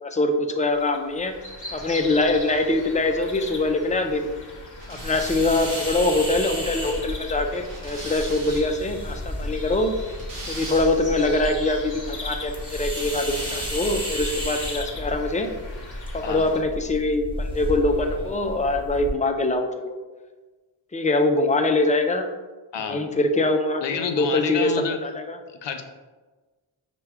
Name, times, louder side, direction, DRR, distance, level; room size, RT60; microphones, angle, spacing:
voice 1, 0.0-1.4 1.7-4.3 4.9-9.9 10.5-15.5 16.1-20.0 20.9-22.3 22.8-25.4, left 2 dB, 20° left, 5 dB, 0.3 m, -23 dB
sound 1, 0.7-16.6, left 2 dB, 40° left, 1.0 m, -40 dB
sound 2, 4.8-8.9 9.8-11.3 12.9-14.2, right 2 dB, 45° right, 0.9 m, -40 dB
sound 3, 5.0-19.1, equal, 10° right, 1.2 m, -33 dB
voice 2, 23.8-25.0 25.5-25.8, left 6 dB, 65° left, 6 dB, 0.6 m, -29 dB
5.7 x 2.2 x 3.4 m, 1.3 s
wide cardioid pair, 80°, 48 cm